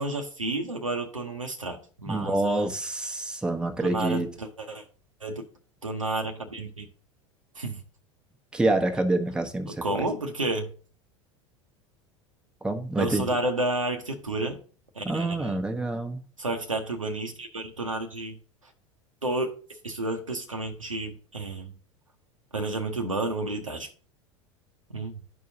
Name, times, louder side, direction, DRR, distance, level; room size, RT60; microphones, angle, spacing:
voice 1, 0.0-2.7 3.8-4.8 5.2-5.4 5.8-6.9 7.6-7.8 9.8-10.7 13.0-14.6 15.0-15.6 16.4-18.4 19.2-19.6 19.8-21.7 22.5-23.9 24.9-25.2, right 2 dB, 90° right, 0.8 m, -31 dB
voice 2, 2.0-4.3 8.5-10.1 12.6-13.3 15.0-16.2, right 2 dB, 5° right, 0.9 m, -27 dB
12.0 x 4.6 x 2.7 m
figure-of-eight pair, 80°, 16 cm